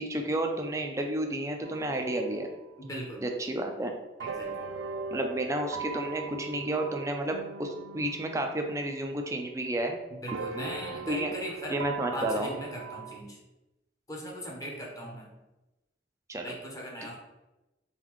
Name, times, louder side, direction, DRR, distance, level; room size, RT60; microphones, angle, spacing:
voice 1, 0.0-2.5 3.2-3.9 5.1-10.0 11.1-11.3 11.7-12.5 16.3-16.5, right 1 dB, 15° right, 3 dB, 0.5 m, -31 dB
sound 1, 1.6-3.0 4.2-9.9 10.3-13.2, right 5 dB, 85° right, 0.3 m, -40 dB
voice 2, 2.9-3.2 4.2-4.5 10.2-11.8 12.1-13.4 14.1-15.3 16.4-17.1, equal, 20° left, -2 dB, 0.9 m, -39 dB
4.0 x 4.0 x 3.1 m, 1.0 s
head